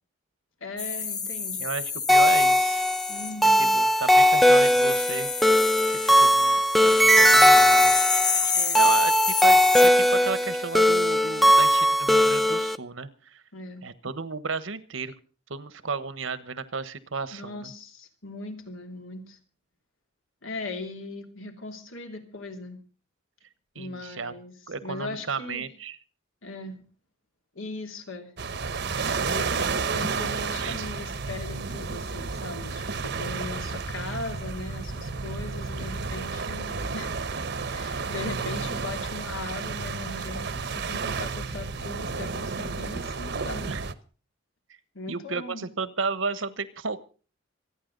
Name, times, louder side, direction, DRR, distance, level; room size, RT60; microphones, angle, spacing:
voice 1, 0.6-1.6 3.1-3.9 8.5-8.9 13.5-13.9 17.3-19.4 20.4-22.8 23.7-24.5 24.8-25.7 26.4-26.8 27.5-28.3 28.7-28.8 29.2-37.2 37.7-43.8 44.9-45.7, left 2 dB, 90° left, 4 dB, 3.1 m, -39 dB
sound 1, 0.8-3.3 4.3-9.9, left 5 dB, 20° left, 0.9 m, -29 dB
voice 2, 1.6-2.8 3.6-5.5 5.9-7.9 8.8-13.4 13.8-15.1 15.5-17.7 23.7-24.3 24.7-26.0 30.6-30.9 43.7-43.9 45.1-47.0, right 4 dB, 80° right, 14 dB, 1.3 m, -33 dB
sound 2, 2.1-12.8, equal, ahead, 0.6 m, -19 dB
sound 3, 28.4-43.9, right 4 dB, 60° right, 1.0 m, -31 dB
26.0 x 9.8 x 4.0 m, 0.38 s
head